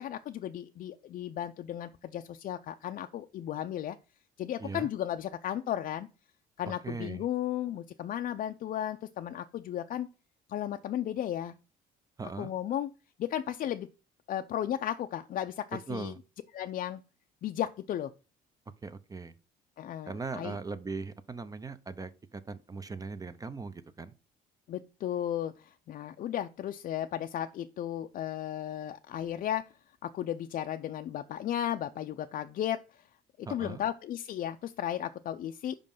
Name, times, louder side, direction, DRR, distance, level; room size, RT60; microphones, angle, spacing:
voice 1, 0.0-4.0 4.4-6.1 6.6-10.1 10.5-11.6 12.4-12.9 13.2-13.9 14.3-16.1 16.5-17.0 17.4-18.1 19.8-20.6 24.7-29.6 30.0-33.1 33.4-35.8, left 11 dB, 55° left, 0.5 m, -34 dB
voice 2, 6.8-7.2 12.2-12.5 15.9-16.2 18.8-19.3 20.1-24.1 33.5-33.8, right 4 dB, 20° right, 0.7 m, -39 dB
5.3 x 5.1 x 5.4 m
cardioid pair, 110°, 17 cm